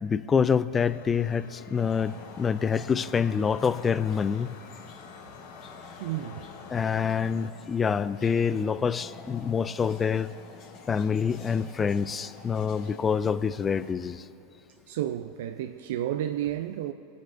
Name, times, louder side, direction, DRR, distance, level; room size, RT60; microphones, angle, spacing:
voice 1, 0.0-4.5 6.7-10.3 10.9-14.2, left 6 dB, 25° left, 0.3 m, -26 dB
sound 1, 0.7-7.5, left 7 dB, 70° left, 0.7 m, -49 dB
sound 2, 1.7-13.9, left 4 dB, 50° left, 2.2 m, -48 dB
voice 2, 6.0-6.4 14.9-16.9, right 12 dB, 65° right, 0.4 m, -31 dB
21.0 x 9.2 x 2.6 m
hypercardioid pair, 90°, 0 cm